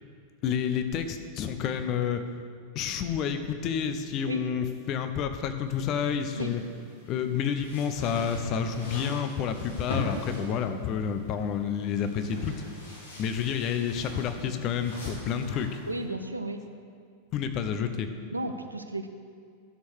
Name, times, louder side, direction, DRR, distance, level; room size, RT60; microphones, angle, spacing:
voice 1, 0.4-2.2 2.7-6.6 7.1-12.5 13.2-15.8 17.3-18.1, left 7 dB, 35° left, 8 dB, 0.9 m, -29 dB
sound 1, 5.6-16.0, left 2 dB, 70° left, 3.0 m, -41 dB
voice 2, 15.9-16.6 18.3-19.1, right 1 dB, 85° right, 7 dB, 0.7 m, -33 dB
12.5 x 6.5 x 6.4 m, 2.1 s
figure-of-eight pair, 90°, 0 cm